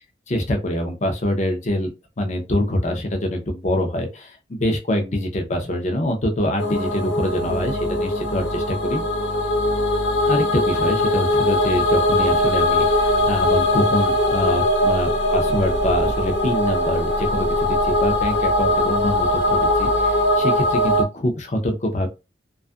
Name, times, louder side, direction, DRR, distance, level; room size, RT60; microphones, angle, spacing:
voice 1, 0.3-1.9 2.2-9.0 10.3-22.1, left 1 dB, 40° left, 3 dB, 0.6 m, -25 dB
sound 1, 6.6-21.0, left 1 dB, 90° left, 0.6 m, -20 dB
2.5 x 2.4 x 2.4 m, 0.27 s
head